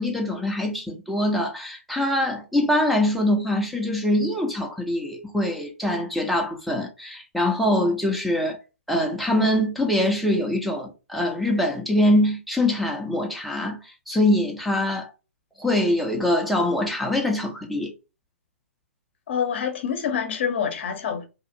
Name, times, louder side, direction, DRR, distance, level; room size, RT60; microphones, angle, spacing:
voice 1, 0.0-8.6 8.9-13.8 14.1-15.1 15.6-17.9, left 1 dB, ahead, 0.7 m, -23 dB
voice 2, 19.3-21.3, left 7 dB, 50° left, 0.8 m, -26 dB
2.8 x 2.4 x 2.7 m
figure-of-eight pair, 125°, 7 cm